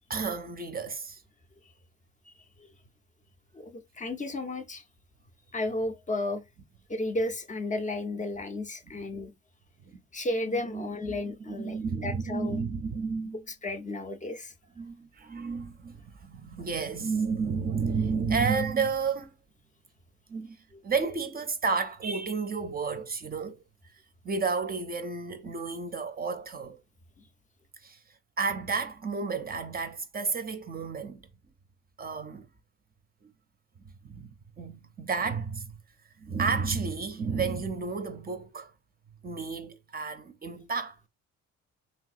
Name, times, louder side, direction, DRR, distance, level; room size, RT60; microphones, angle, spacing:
voice 1, 0.1-1.2 8.9-9.0 9.9-10.0 10.5-11.2 11.5-13.4 14.8-19.3 20.3-20.6 20.8-23.6 24.2-26.8 27.8-28.0 28.4-31.2 32.0-32.5 34.0-35.8 36.2-38.7 39.2-41.1, right 5 dB, 30° right, 0.5 m, -31 dB
voice 2, 3.5-4.8 5.5-6.4 6.9-9.3 10.1-12.6 13.5-14.5, left 2 dB, 25° left, 0.5 m, -33 dB
3.4 x 2.6 x 2.4 m
cardioid pair, 90°, 30 cm